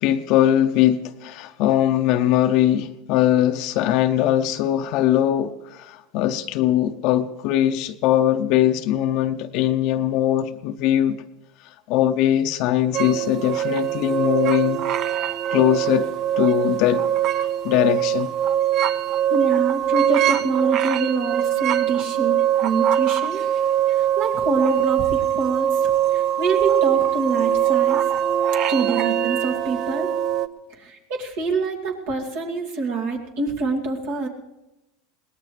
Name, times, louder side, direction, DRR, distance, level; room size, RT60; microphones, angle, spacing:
voice 1, 0.0-11.2 11.9-14.8 15.5-16.1 16.4-17.0 17.6-18.3, left 12 dB, 60° left, 0.7 m, -20 dB
sound 1, 12.9-30.5, right 10 dB, 50° right, 0.7 m, -22 dB
voice 2, 19.3-23.4 23.9-28.0 28.7-30.1 30.8-34.3, right 4 dB, 65° right, 2.5 m, -26 dB
22.0 x 18.0 x 3.4 m
hypercardioid pair, 90°, 0 cm